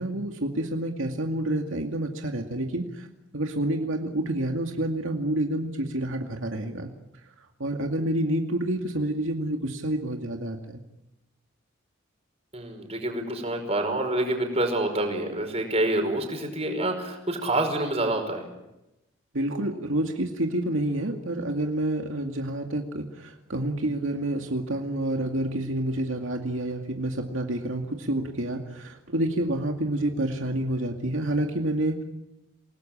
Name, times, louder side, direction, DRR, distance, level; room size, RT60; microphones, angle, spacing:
voice 1, 0.0-3.1 3.3-6.9 7.6-10.8 19.3-32.0, right 1 dB, 75° right, 3 dB, 2.3 m, -28 dB
voice 2, 12.5-18.5, right 1 dB, 30° right, 5 dB, 5.4 m, -27 dB
28.5 x 19.0 x 8.8 m, 0.93 s
head